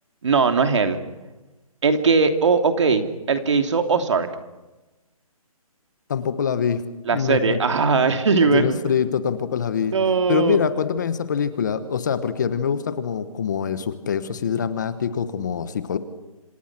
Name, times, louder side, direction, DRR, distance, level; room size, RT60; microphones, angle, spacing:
voice 1, 0.2-1.0 1.8-4.3 7.0-8.8 9.9-10.6, right 4 dB, 50° right, 6 dB, 2.8 m, -19 dB
voice 2, 6.1-6.8 7.1-7.6 8.4-9.9 10.3-16.0, left 7 dB, 30° left, 12 dB, 1.3 m, -24 dB
28.0 x 26.5 x 6.1 m, 1.1 s
hypercardioid pair, 175°, 19 cm